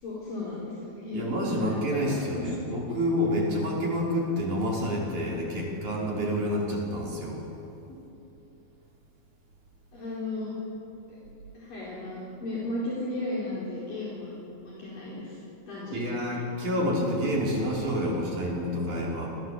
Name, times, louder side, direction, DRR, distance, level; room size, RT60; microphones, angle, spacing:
voice 1, 0.0-2.6 2.9-3.0 9.9-10.5 11.1-11.2 11.5-15.4 15.7-16.2, left 2 dB, 50° left, -7 dB, 6.3 m, -35 dB
voice 2, 1.1-7.5 15.9-19.3, equal, 40° right, -3 dB, 6.8 m, -28 dB
28.5 x 26.0 x 7.8 m, 2.9 s
omnidirectional pair, 5.2 m